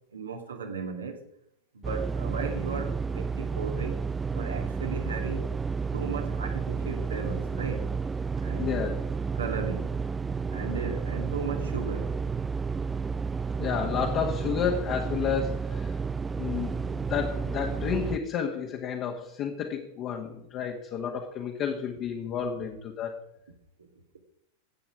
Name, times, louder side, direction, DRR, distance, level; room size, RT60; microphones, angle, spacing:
voice 1, 0.1-1.2 1.7-4.0 4.3-5.5 5.9-7.9 8.4-8.8 9.3-10.0 10.5-12.2 23.8-23.9, right 5 dB, 70° right, 2.3 m, -36 dB
sound 1, 1.8-18.2, right 5 dB, 15° right, 0.4 m, -31 dB
voice 2, 8.6-9.0 13.6-16.0 16.4-23.3, left 7 dB, 35° left, 1.7 m, -31 dB
15.5 x 8.8 x 4.9 m
figure-of-eight pair, 90°, 0 cm